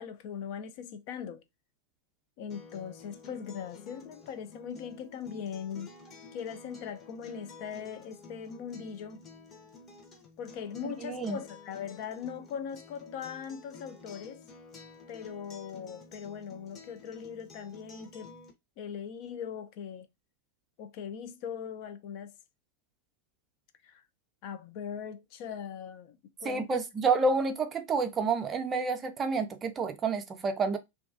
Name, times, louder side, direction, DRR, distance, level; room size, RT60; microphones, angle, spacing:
voice 1, 0.0-1.4 2.4-5.9 6.3-9.2 10.4-14.5 15.1-18.3 18.8-20.1 20.8-22.3 23.8-24.0 24.4-26.9, left 7 dB, 45° left, 0.3 m, -40 dB
Acoustic guitar, 2.5-18.5, left 3 dB, 25° left, 0.7 m, -51 dB
voice 2, 10.8-11.4 26.4-30.8, right 4 dB, 25° right, 0.5 m, -29 dB
2.3 x 2.2 x 2.4 m
figure-of-eight pair, 90°, 0 cm